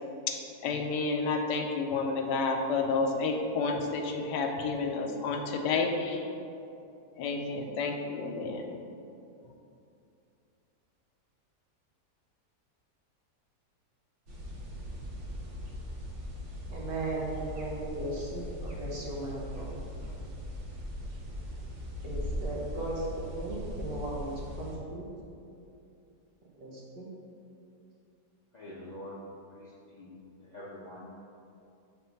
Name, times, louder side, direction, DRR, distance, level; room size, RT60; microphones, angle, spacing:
voice 1, 0.3-6.3 7.2-8.7, left 4 dB, 85° left, 4 dB, 1.3 m, -30 dB
sound 1, 14.3-24.8, equal, 50° right, 1.1 m, -39 dB
voice 2, 16.7-19.7 22.0-24.3 24.6-25.1 26.6-27.1, right 2 dB, 90° right, -4 dB, 1.8 m, -37 dB
voice 3, 28.5-29.2 29.5-30.1 30.5-31.3, left 1 dB, 55° left, -7 dB, 0.4 m, -45 dB
4.4 x 4.2 x 5.7 m, 2.6 s
omnidirectional pair, 1.8 m